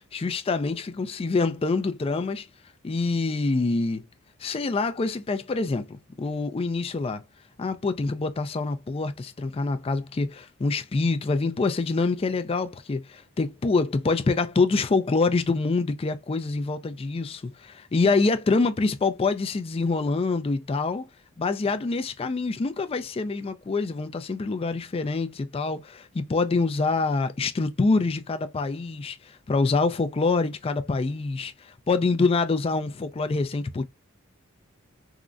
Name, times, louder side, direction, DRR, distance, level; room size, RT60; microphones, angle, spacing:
voice 1, 0.1-2.5 2.8-4.0 4.4-7.2 7.6-21.1 21.4-33.8, left 3 dB, 25° left, 0.4 m, -26 dB
3.7 x 2.0 x 2.4 m
head